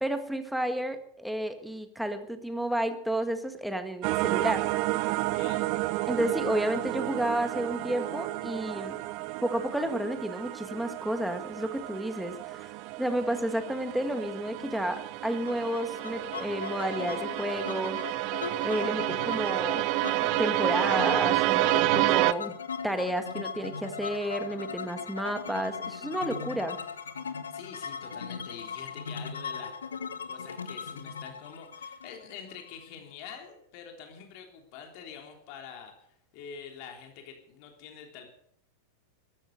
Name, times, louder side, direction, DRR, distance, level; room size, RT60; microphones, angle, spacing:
voice 1, 0.0-4.7 6.1-9.0 9.4-12.7 13.0-18.0 18.6-19.9 20.2-22.5 22.8-26.8, right 1 dB, ahead, 8 dB, 1.8 m, -31 dB
sound 1, 4.0-22.3, right 19 dB, 45° right, 0.6 m, -30 dB
voice 2, 5.2-5.7 27.5-29.8 30.3-35.9 36.3-38.3, left 7 dB, 45° left, 3 dB, 3.3 m, -46 dB
sound 2, 15.5-33.2, left 6 dB, 70° left, 1.3 m, -39 dB
14.5 x 12.5 x 6.6 m, 0.69 s
figure-of-eight pair, 90°, 0 cm